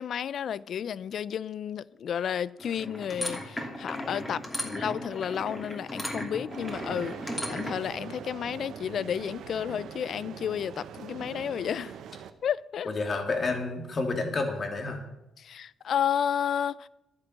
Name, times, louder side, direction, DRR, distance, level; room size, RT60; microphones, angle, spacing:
voice 1, 0.0-12.0 12.4-12.9 15.4-16.9, left 8 dB, 60° left, 0.5 m, -32 dB
sound 1, 2.6-7.9, left 1 dB, 10° left, 2.9 m, -36 dB
sound 2, 6.5-12.3, right 8 dB, 75° right, 0.9 m, -42 dB
voice 2, 12.8-15.0, left 3 dB, 40° left, 2.8 m, -30 dB
11.0 x 9.8 x 8.0 m
cardioid pair, 90°, 0 cm